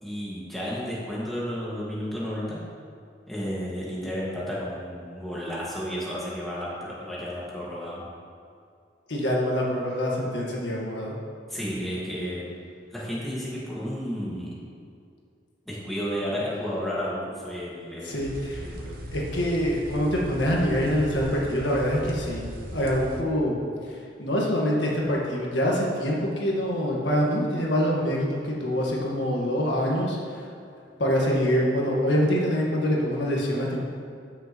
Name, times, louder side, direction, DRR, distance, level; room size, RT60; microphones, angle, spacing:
voice 1, 0.0-2.6 3.3-8.0 11.5-12.4 12.9-14.5 15.7-18.3 18.6-18.9, equal, ahead, -8 dB, 1.8 m, -32 dB
voice 2, 9.1-11.1 18.0-18.7 19.1-22.4 22.7-23.6 23.8-30.4 31.0-33.8, equal, 75° left, -3 dB, 1.6 m, -25 dB
sound 1, 18.2-23.2, equal, 50° right, 0.8 m, -38 dB
13.5 x 6.6 x 3.1 m, 2.3 s
head